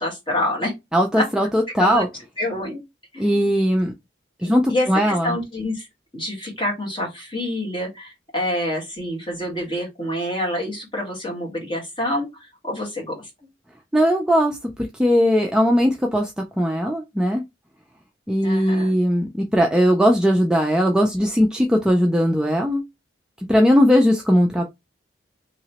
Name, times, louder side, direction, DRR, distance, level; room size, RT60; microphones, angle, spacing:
voice 1, 0.0-0.7 1.1-1.2 1.8-2.0 2.4-2.8 3.1-3.4 4.4-5.9 6.1-13.2 18.4-19.0, left 1 dB, 25° left, 1.4 m, -27 dB
voice 2, 0.9-2.1 3.2-3.9 4.4-5.4 13.9-16.3 16.6-17.4 18.3-22.8 23.5-24.6, equal, 5° right, 0.3 m, -19 dB
2.9 x 2.8 x 2.8 m
head